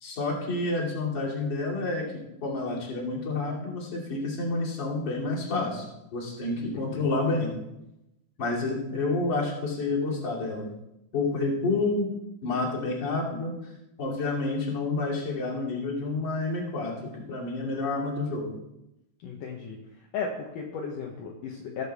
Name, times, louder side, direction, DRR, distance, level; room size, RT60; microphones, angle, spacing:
voice 1, 0.0-2.0 2.4-5.9 6.1-7.5 8.4-10.7 11.1-12.1 12.4-13.7 14.0-18.5, left 3 dB, 35° left, -4 dB, 2.4 m, -29 dB
voice 2, 6.7-7.0 19.2-19.8 20.1-21.8, left 5 dB, 75° left, 0 dB, 2.0 m, -35 dB
18.5 x 6.8 x 3.4 m, 0.90 s
omnidirectional pair, 4.9 m